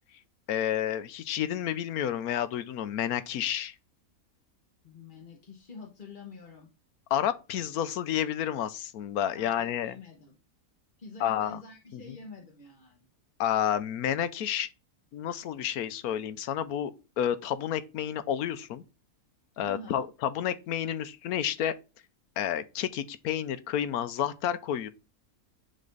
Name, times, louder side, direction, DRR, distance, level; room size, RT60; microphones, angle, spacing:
voice 1, 0.5-3.7 7.1-10.0 11.2-11.6 11.9-12.0 13.4-14.7 15.1-18.8 19.6-21.7 22.4-24.9, left 10 dB, 90° left, 1.2 m, -30 dB
voice 2, 4.8-6.7 9.3-10.4 11.0-13.0 19.6-20.0, left 3 dB, 40° left, 1.2 m, -47 dB
9.9 x 4.2 x 4.0 m
omnidirectional pair, 1.5 m